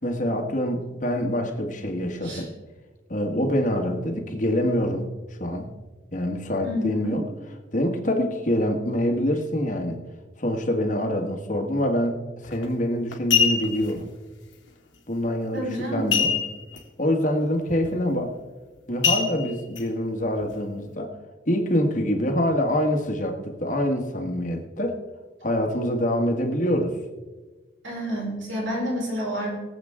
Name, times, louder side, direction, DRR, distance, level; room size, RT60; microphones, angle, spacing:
voice 1, 0.0-2.5 3.1-5.1 5.4-5.7 6.1-7.2 7.7-10.0 10.4-12.2 12.4-14.1 15.1-16.3 17.0-18.3 18.9-21.1 21.5-25.0 25.4-27.0, equal, 40° left, 3 dB, 1.6 m, -25 dB
voice 2, 6.6-7.2 15.5-16.2 27.8-29.5, equal, 75° right, -3 dB, 5.0 m, -29 dB
sound 1, 12.4-12.7 13.1-13.9 16.1-16.8 17.1-17.2 17.7-17.9 19.0-19.8 20.4-20.5, left 7 dB, 80° left, 2.1 m, -23 dB
23.0 x 8.0 x 3.7 m, 1.3 s
head